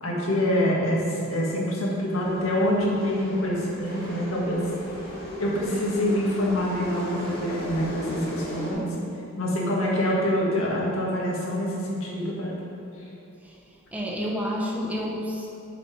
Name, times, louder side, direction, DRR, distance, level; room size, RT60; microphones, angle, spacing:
voice 1, 0.0-4.6 5.4-8.9 9.4-12.6, equal, 85° left, -4 dB, 1.8 m, -26 dB
sound 1, 2.1-8.7, equal, 50° left, 1.9 m, -36 dB
voice 2, 13.4-15.5, equal, 5° right, -4 dB, 1.1 m, -30 dB
7.0 x 6.9 x 4.8 m, 2.7 s
head